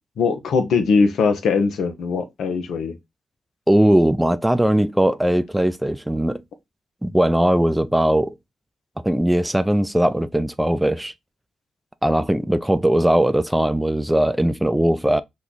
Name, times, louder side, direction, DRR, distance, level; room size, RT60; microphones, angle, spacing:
voice 1, 0.2-3.0, left 5 dB, 75° left, 0.7 m, -20 dB
voice 2, 3.7-6.4 7.0-8.3 9.0-11.1 12.0-15.2, right 1 dB, 10° right, 0.4 m, -19 dB
3.1 x 2.3 x 3.8 m
supercardioid pair, 50°, 0 cm